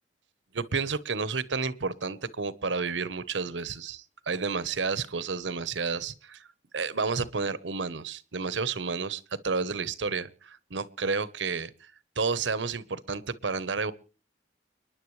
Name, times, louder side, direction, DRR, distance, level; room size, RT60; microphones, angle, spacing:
voice 1, 0.5-6.4 6.7-11.7 12.2-13.9, right 4 dB, 90° right, 16 dB, 1.0 m, -31 dB
30.0 x 10.5 x 3.2 m, 0.35 s
head